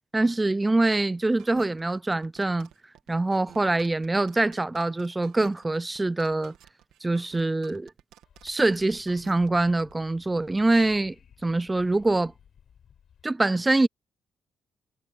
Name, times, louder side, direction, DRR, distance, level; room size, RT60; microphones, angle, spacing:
voice 1, 0.1-2.7 3.1-6.5 7.0-7.9 8.4-11.2 11.4-12.3 13.2-13.9, right 2 dB, 15° right, 0.4 m, -24 dB
sound 1, 1.4-9.9, right 12 dB, 90° right, 2.0 m, -53 dB
Wind / Subway metro underground, 8.2-13.2, left 8 dB, 60° left, 6.5 m, -57 dB
cardioid pair, 90°, 0 cm